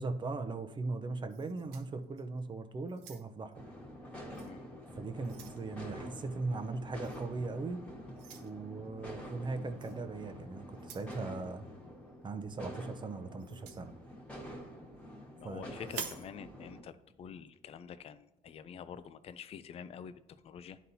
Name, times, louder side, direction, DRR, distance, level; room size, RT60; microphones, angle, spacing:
voice 1, 0.0-3.5 4.9-7.8 8.4-11.7 12.2-13.9 15.4-15.6, right 3 dB, 25° right, 8 dB, 0.6 m, -39 dB
sound 1, 1.3-2.4 2.9-3.5 4.3-4.5 4.9-5.6 7.0-7.3 8.2-8.5 9.8-10.0 10.7-11.2 13.4-13.8 15.8-16.3, right 8 dB, 85° right, 0.8 m, -47 dB
sound 2, 3.5-16.8, equal, 10° left, 1.5 m, -47 dB
voice 2, 15.4-20.8, left 7 dB, 35° left, 13 dB, 0.4 m, -47 dB
11.0 x 4.1 x 2.7 m, 0.91 s
cardioid pair, 110°, 17 cm